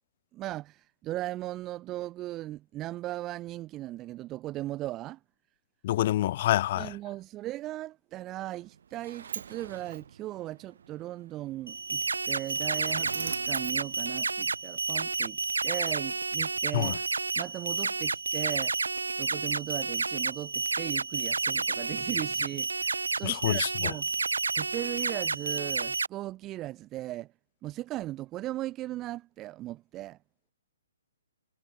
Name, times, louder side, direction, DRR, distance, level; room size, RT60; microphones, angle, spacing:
voice 1, 0.3-5.2 6.8-15.4 15.6-17.0 17.3-18.7 19.2-24.1 24.5-27.3 27.6-30.2, right 15 dB, 20° right, 3.6 m, -38 dB
voice 2, 5.8-6.9 16.7-16.9 23.2-23.7, left 14 dB, 45° left, 1.1 m, -26 dB
Sliding door, 8.4-14.8, right 7 dB, 65° right, 2.9 m, -44 dB
sound 1, 11.7-26.1, right 4 dB, 90° right, 0.6 m, -30 dB
hypercardioid pair, 140°, 0 cm